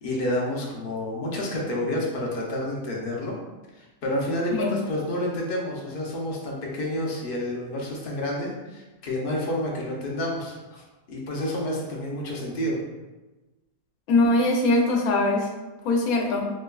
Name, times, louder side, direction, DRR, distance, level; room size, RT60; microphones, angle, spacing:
voice 1, 0.0-3.4 3.8-12.8, left 1 dB, 55° left, -2 dB, 0.6 m, -29 dB
voice 2, 14.1-15.5 15.8-16.5, left 2 dB, 80° left, 1 dB, 1.0 m, -21 dB
4.4 x 2.1 x 2.3 m, 1.1 s
omnidirectional pair, 1.5 m